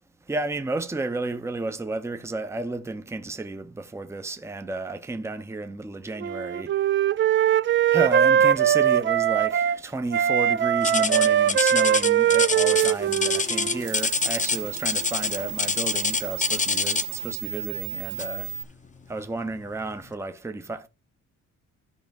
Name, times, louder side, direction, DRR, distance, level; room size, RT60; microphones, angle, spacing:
voice 1, 0.3-6.7 7.9-18.5 19.1-20.9, right 2 dB, 10° right, 0.7 m, -32 dB
Wind instrument woodwind instrument, 6.2-9.8 10.1-13.9, right 10 dB, 40° right, 0.4 m, -21 dB
sound 1, 10.8-17.2 18.2-18.4 19.0-19.1 19.8-19.9, left 5 dB, 25° left, 0.7 m, -26 dB
sound 2, 12.3-18.6, right 10 dB, 80° right, 0.9 m, -35 dB
13.0 x 5.0 x 3.5 m
cardioid pair, 90°, 30 cm